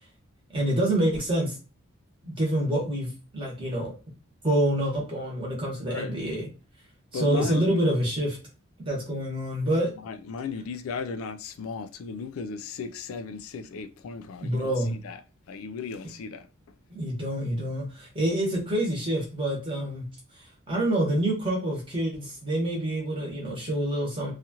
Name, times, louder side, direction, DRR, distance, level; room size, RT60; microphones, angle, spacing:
voice 1, 0.5-1.6 2.2-3.9 4.4-6.5 7.1-8.4 8.9-9.9 14.4-14.9 16.9-20.0 20.7-24.3, right 1 dB, 25° right, 1.1 m, -27 dB
voice 2, 5.9-6.2 7.1-7.8 10.0-15.2 15.5-16.5, left 5 dB, 70° left, 0.3 m, -36 dB
2.8 x 2.4 x 2.7 m
head